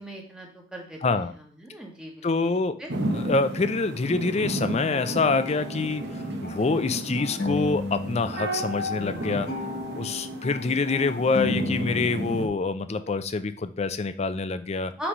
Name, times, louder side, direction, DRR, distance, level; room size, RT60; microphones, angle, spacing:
voice 1, 0.0-2.9 15.0-15.1, equal, 5° right, 0 dB, 1.1 m, -39 dB
voice 2, 1.0-1.3 2.2-2.7 3.1-6.0 6.4-9.5 10.0-14.9, left 3 dB, 35° left, 11 dB, 0.4 m, -26 dB
sound 1, 2.9-12.5, right 1 dB, 60° right, 1.0 m, -33 dB
sound 2, 4.3-8.2 8.5-12.3, left 2 dB, 50° left, 1.0 m, -34 dB
5.8 x 3.3 x 5.3 m, 0.43 s
head